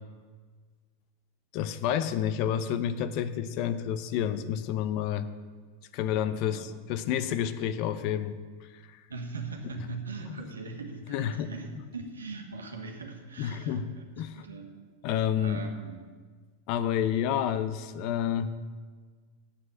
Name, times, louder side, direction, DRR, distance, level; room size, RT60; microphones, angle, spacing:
voice 1, 1.5-5.3 5.9-8.4 8.9-9.0 10.3-10.4 11.1-11.5 13.4-13.9 14.2-14.5 15.0-15.7 16.7-18.5, left 9 dB, 50° left, 12 dB, 0.7 m, -29 dB
voice 2, 6.4-6.7 9.1-14.0 14.3-14.7 15.4-16.1, right 4 dB, 85° right, 3 dB, 1.6 m, -40 dB
8.5 x 7.6 x 8.5 m, 1.5 s
hypercardioid pair, 90°, 0 cm